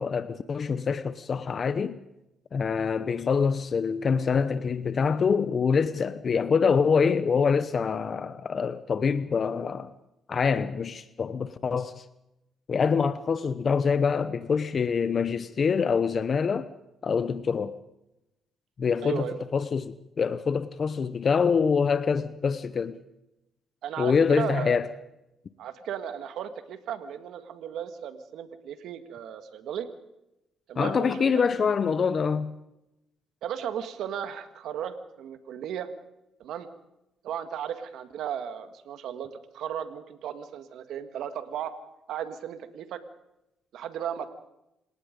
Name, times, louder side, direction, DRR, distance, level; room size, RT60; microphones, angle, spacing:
voice 1, 0.0-2.0 2.5-9.9 10.3-12.0 12.7-16.7 17.0-17.7 18.8-23.0 24.0-24.9 30.8-32.5, left 6 dB, 45° left, 0.9 m, -25 dB
voice 2, 19.0-19.4 23.8-24.8 25.6-29.9 30.7-31.7 33.4-35.9 36.4-36.7 37.2-41.7 42.1-43.0 43.7-44.3, right 9 dB, 80° right, 1.8 m, -35 dB
27.5 x 18.0 x 5.3 m
cardioid pair, 90°, 0 cm